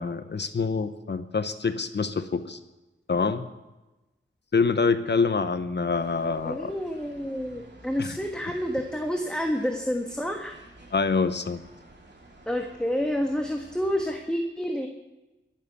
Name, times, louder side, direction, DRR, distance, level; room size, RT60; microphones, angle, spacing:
voice 1, 0.0-2.6 3.1-3.5 4.5-6.7 8.0-8.2 10.9-11.6, left 4 dB, 55° left, 10 dB, 0.9 m, -26 dB
sound 1, 5.9-14.2, right 1 dB, 55° right, 3.2 m, -51 dB
voice 2, 6.4-10.6 12.5-14.9, equal, 5° left, 2 dB, 1.4 m, -29 dB
22.0 x 7.6 x 6.9 m, 1.1 s
wide cardioid pair, 80°, 21 cm